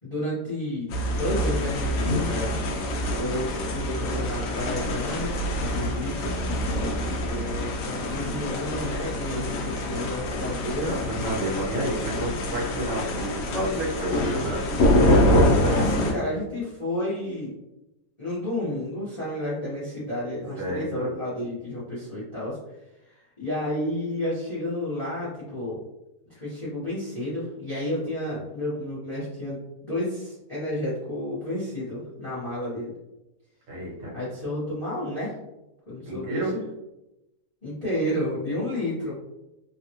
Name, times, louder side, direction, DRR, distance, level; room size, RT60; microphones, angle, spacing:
voice 1, 0.0-2.6 3.2-6.3 7.2-11.0 12.1-12.2 15.5-17.5 18.2-22.6 23.0-25.8 26.2-32.9 34.1-35.4 35.9-36.6 37.6-39.2, left 1 dB, 30° left, -11 dB, 0.8 m, -31 dB
sound 1, 0.9-16.1, left 1 dB, 65° left, 0.8 m, -25 dB
voice 2, 6.9-7.5 10.8-14.7 20.6-21.1 33.7-34.2 36.0-36.5, right 1 dB, 75° right, -5 dB, 1.7 m, -31 dB
3.3 x 2.3 x 2.8 m, 0.95 s
omnidirectional pair, 1.9 m